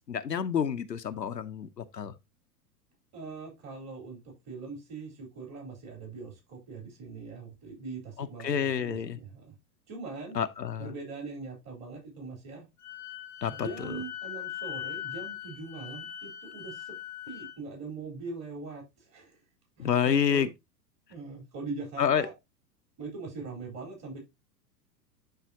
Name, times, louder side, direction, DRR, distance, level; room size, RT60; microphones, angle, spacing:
voice 1, 0.1-2.1 8.2-9.2 10.3-10.9 13.4-14.0 19.8-20.5 22.0-22.3, left 8 dB, 80° left, 0.8 m, -29 dB
voice 2, 3.1-4.2 4.5-9.5 9.9-10.4 10.8-12.7 13.5-17.0 17.3-18.8 19.1-19.4 19.8-20.5 21.1-22.3 23.0-24.2, right 4 dB, 30° right, 4.3 m, -41 dB
Wind instrument woodwind instrument, 12.8-17.5, left 11 dB, 5° left, 0.4 m, -40 dB
11.5 x 4.2 x 2.8 m
figure-of-eight pair, 95°, 50 cm